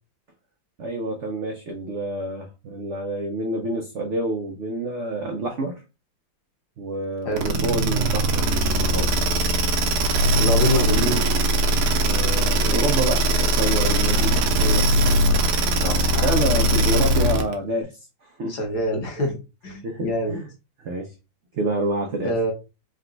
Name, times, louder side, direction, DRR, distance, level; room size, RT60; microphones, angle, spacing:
voice 1, 0.8-5.8 6.8-9.2 12.1-14.3 16.2-17.9 18.2-18.6 19.8-20.5 20.8-21.1 21.5-22.3, right 2 dB, 85° right, 3 dB, 0.6 m, -28 dB
sound 1, 7.4-17.5, right 1 dB, 65° right, 1.1 m, -20 dB
voice 2, 10.4-11.2 14.6-15.1 15.8-16.8 18.5-19.4 19.6-20.4 22.2-22.5, equal, 60° left, 2 dB, 1.6 m, -27 dB
3.9 x 2.2 x 3.8 m, 0.29 s
omnidirectional pair, 2.1 m